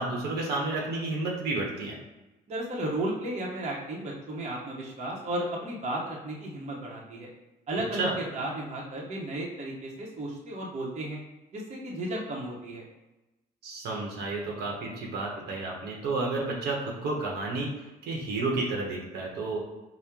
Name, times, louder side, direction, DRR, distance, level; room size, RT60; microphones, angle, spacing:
voice 1, 0.0-1.9 7.9-8.2 13.6-17.7 18.0-19.6, right 3 dB, 75° right, -1 dB, 0.9 m, -31 dB
voice 2, 2.5-7.3 7.7-11.2 11.5-12.8, right 1 dB, 40° right, -3 dB, 0.9 m, -34 dB
4.3 x 2.1 x 3.6 m, 1.0 s
cardioid pair, 110°, 17 cm